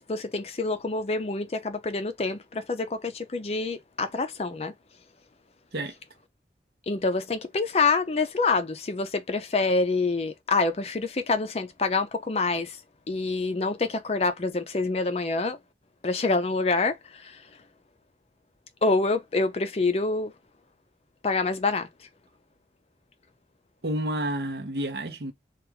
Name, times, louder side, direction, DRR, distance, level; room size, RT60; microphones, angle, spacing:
voice 1, 0.0-4.7 6.9-12.8 13.1-15.6 16.0-17.4 18.8-20.3 21.2-21.9, left 3 dB, 35° left, 0.5 m, -26 dB
voice 2, 23.8-25.3, right 1 dB, 65° right, 0.8 m, -30 dB
2.9 x 2.4 x 3.4 m
head